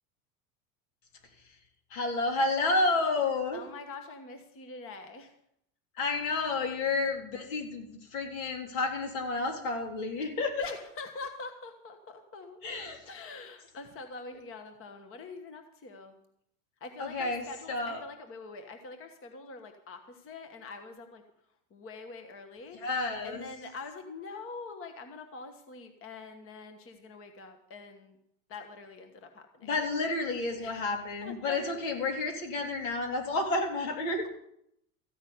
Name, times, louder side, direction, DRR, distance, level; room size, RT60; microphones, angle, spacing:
voice 1, 1.9-3.6 6.0-10.7 12.6-13.1 17.0-18.0 22.7-23.5 29.6-34.3, left 3 dB, 75° left, 2 dB, 3.5 m, -30 dB
voice 2, 3.5-5.3 10.6-12.6 13.0-16.2 16.8-21.2 21.7-22.8 23.2-28.2 28.5-29.7 30.6-30.8 31.2-31.7, left 3 dB, 30° left, 6 dB, 1.3 m, -44 dB
14.5 x 6.2 x 9.4 m, 0.75 s
supercardioid pair, 135°, 41 cm